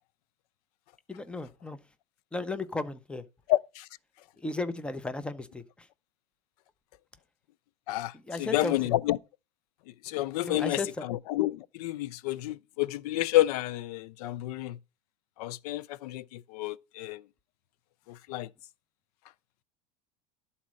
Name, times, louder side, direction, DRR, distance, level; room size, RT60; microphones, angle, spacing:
voice 1, 1.1-1.8 2.3-3.2 4.4-5.9 8.1-8.7 10.4-11.0, left 2 dB, 5° left, 0.6 m, -35 dB
voice 2, 3.5-3.9 7.9-8.1 8.4-9.2 10.0-10.8 11.1-14.8 15.4-17.2 18.1-18.5, left 16 dB, 85° left, 0.4 m, -29 dB
11.5 x 4.2 x 6.2 m
supercardioid pair, 145°, 19 cm